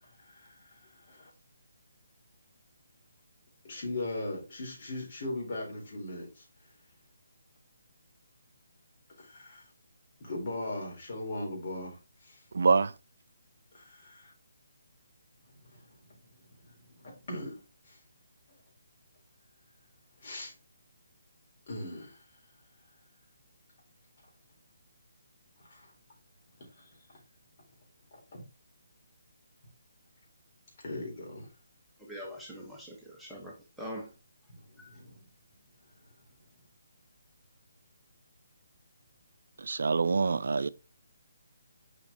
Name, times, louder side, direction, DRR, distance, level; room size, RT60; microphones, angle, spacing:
voice 1, 0.0-1.3 3.6-6.5 9.2-9.7 10.2-12.4 13.7-14.3 15.5-17.6 17.9-18.0 20.2-20.5 21.7-22.2 25.6-25.9 26.7-27.0 28.1-28.4 30.8-31.5 34.7-35.2, left 2 dB, 45° left, 4.1 m, -40 dB
voice 2, 12.5-12.9 39.6-40.7, right 4 dB, 70° right, 0.4 m, -25 dB
voice 3, 32.1-34.1 34.8-35.0, equal, ahead, 1.3 m, -43 dB
7.0 x 5.8 x 3.0 m
hypercardioid pair, 155°, 0 cm